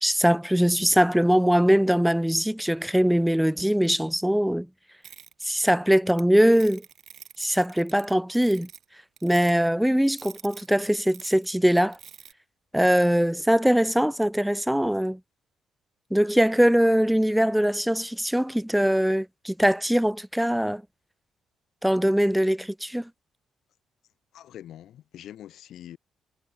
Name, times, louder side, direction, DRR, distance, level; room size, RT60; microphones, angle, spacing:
voice 1, 0.0-4.7 5.4-6.8 7.4-8.7 9.2-12.0 12.7-15.2 16.1-20.8 21.8-23.1, equal, 5° right, 0.6 m, -22 dB
sound 1, 5.0-6.2 6.5-8.8 9.2-9.5 10.1-11.5 11.8-12.3, right 8 dB, 60° right, 5.2 m, -47 dB
voice 2, 24.3-26.0, left 11 dB, 75° left, 2.3 m, -44 dB
cardioid pair, 90°, 0 cm